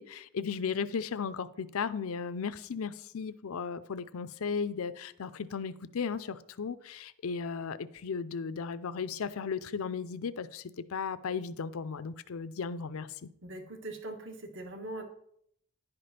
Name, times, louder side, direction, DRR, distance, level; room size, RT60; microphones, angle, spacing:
voice 1, 0.0-13.3, left 5 dB, 70° left, 15 dB, 0.5 m, -36 dB
voice 2, 13.4-15.0, right 1 dB, 55° right, 5 dB, 1.5 m, -41 dB
10.5 x 5.1 x 5.7 m, 0.70 s
head